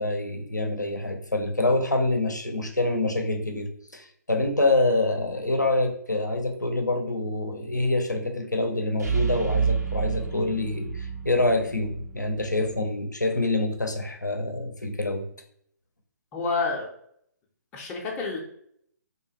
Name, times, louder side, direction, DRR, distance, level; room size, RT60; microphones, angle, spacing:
voice 1, 0.0-15.3, left 2 dB, 90° left, 5 dB, 0.5 m, -26 dB
sound 1, 9.0-12.8, right 6 dB, 70° right, 0.5 m, -29 dB
voice 2, 16.3-16.9 17.7-18.4, left 4 dB, 15° left, -2 dB, 0.4 m, -28 dB
2.8 x 2.2 x 2.8 m, 0.67 s
figure-of-eight pair, 130°, 9 cm